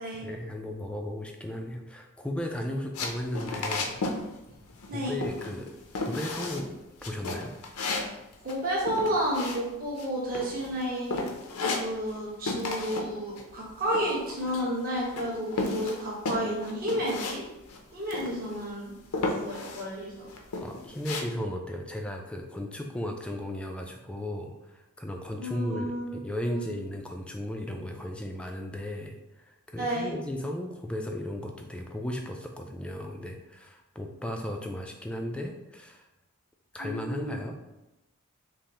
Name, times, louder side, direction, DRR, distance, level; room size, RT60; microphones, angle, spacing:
voice 1, 0.2-4.0 4.9-5.7 6.0-7.5 20.6-29.2 29.4-36.1 36.7-37.6, left 1 dB, 5° left, 3 dB, 0.3 m, -35 dB
sound 1, 2.9-4.2 4.5-4.9 5.2-5.7 6.0-6.7 7.0-10.1 10.3-10.8 11.1-12.2 12.5-13.1 13.4-14.8 15.2-17.4 17.7-17.8 18.1-18.7 19.1-19.9 20.3-21.2, left 3 dB, 90° left, 0.6 m, -33 dB
voice 2, 8.4-11.2 11.8-17.4 17.9-20.3 25.4-26.1 26.4-26.6 29.8-30.1 36.8-37.4, equal, 40° right, -6 dB, 1.1 m, -31 dB
5.4 x 2.0 x 2.9 m, 0.96 s
head